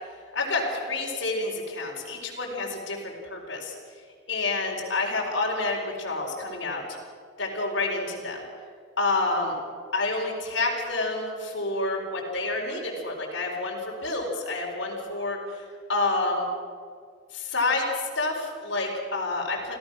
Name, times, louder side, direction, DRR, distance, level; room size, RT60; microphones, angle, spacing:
voice 1, 0.3-3.7 4.3-6.8 7.4-8.4 9.0-9.6 9.9-16.5 17.3-19.7, left 2 dB, 70° left, -2 dB, 4.5 m, -28 dB
28.0 x 16.5 x 6.3 m, 2.1 s
head